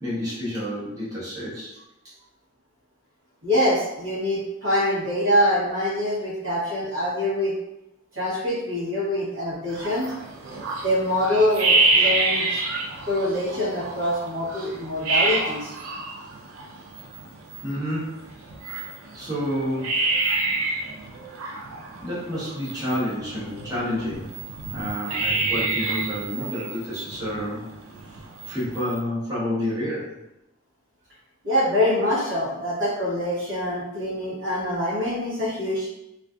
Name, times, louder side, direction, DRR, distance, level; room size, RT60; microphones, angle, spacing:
voice 1, 0.0-1.7 17.6-18.2 19.1-20.1 21.3-21.6 22.0-24.3 24.7-27.7 28.1-28.2 28.4-30.2, equal, 15° right, -10 dB, 0.9 m, -29 dB
voice 2, 3.4-7.5 8.1-10.1 10.8-12.6 13.0-15.7 31.4-35.9, left 1 dB, 65° right, -7 dB, 1.1 m, -24 dB
sound 1, 9.7-29.0, right 3 dB, 85° right, 0.5 m, -28 dB
2.5 x 2.3 x 2.3 m, 0.87 s
head